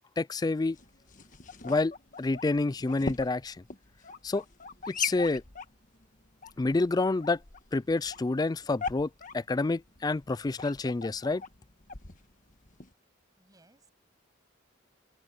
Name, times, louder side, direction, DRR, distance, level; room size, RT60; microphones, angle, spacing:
voice 1, 0.2-0.8 1.6-3.6 4.2-4.4 4.9-5.4 6.6-7.4 7.7-11.4, left 3 dB, 20° left, 0.3 m, -28 dB
sound 1, 0.6-12.9, left 5 dB, 40° left, 1.4 m, -41 dB
voice 2, 13.4-13.9, right 2 dB, 20° right, 7.5 m, -62 dB
open air
head